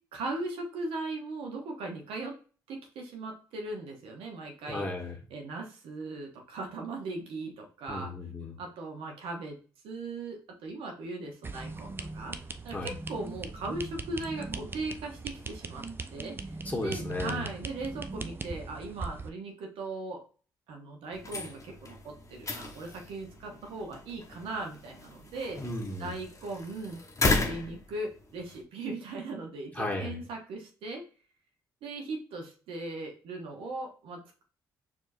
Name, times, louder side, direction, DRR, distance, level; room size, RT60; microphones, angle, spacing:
voice 1, 0.1-2.3 2.7-4.9 5.3-8.1 8.6-9.6 9.8-12.4 12.6-15.9 16.1-20.2 20.7-25.6 26.0-27.0 27.3-31.0 31.8-34.4, right 2 dB, 70° right, 2 dB, 0.9 m, -38 dB
voice 2, 4.7-5.2 7.9-8.5 12.7-12.9 16.6-17.4 25.6-26.1 29.7-30.2, left 2 dB, 15° left, -2 dB, 1.4 m, -34 dB
sound 1, 11.4-19.3, right 3 dB, 25° right, 0.4 m, -39 dB
sound 2, 21.1-28.6, left 3 dB, 35° left, 0.8 m, -35 dB
4.5 x 2.8 x 2.6 m, 0.38 s
hypercardioid pair, 50°, 10 cm